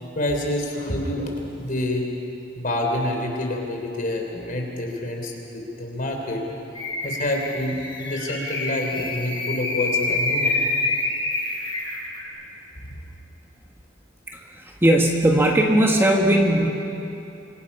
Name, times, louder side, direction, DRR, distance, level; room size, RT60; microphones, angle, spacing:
voice 1, 0.2-2.0 2.6-6.4 7.0-10.6, left 1 dB, 50° left, 1 dB, 3.7 m, -27 dB
sound 1, 6.7-12.2, left 2 dB, 25° left, 4.6 m, -27 dB
voice 2, 14.3-16.7, right 1 dB, 15° right, 0 dB, 1.7 m, -19 dB
26.0 x 24.5 x 5.7 m, 2.8 s
head